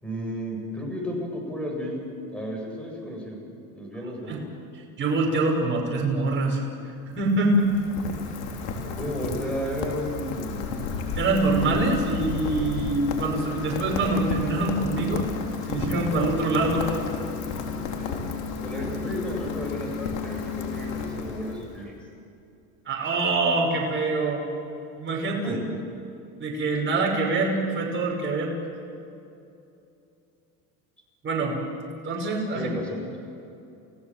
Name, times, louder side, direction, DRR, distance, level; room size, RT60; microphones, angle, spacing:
voice 1, 0.0-2.0 2.3-3.4 3.7-4.5 9.0-10.7 17.9-18.1 18.6-21.9 25.4-25.6 32.5-33.2, equal, 5° left, 0 dB, 7.5 m, -33 dB
voice 2, 5.0-6.6 7.2-7.7 11.2-15.3 15.7-16.9 22.9-24.4 25.0-25.6 26.4-28.5 31.2-31.5 32.0-32.7, right 2 dB, 30° right, -1 dB, 6.0 m, -24 dB
Rain, 7.0-21.8, left 5 dB, 85° left, 3.7 m, -32 dB
29.5 x 17.0 x 7.7 m, 2.6 s
supercardioid pair, 120°, 40 cm